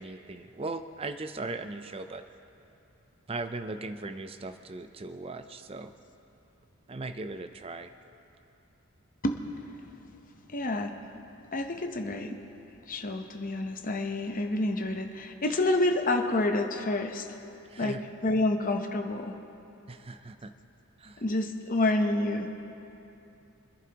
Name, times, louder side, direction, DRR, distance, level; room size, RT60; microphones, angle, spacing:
voice 1, 0.0-2.2 3.3-5.9 6.9-7.9 17.7-18.0 19.9-20.5 21.0-21.2, right 3 dB, 25° right, 9 dB, 0.5 m, -38 dB
voice 2, 10.5-11.0 11.5-12.4 12.9-17.3 17.8-19.3 21.2-22.5, left 2 dB, 40° left, 5 dB, 0.8 m, -28 dB
26.5 x 11.0 x 2.9 m, 2.9 s
head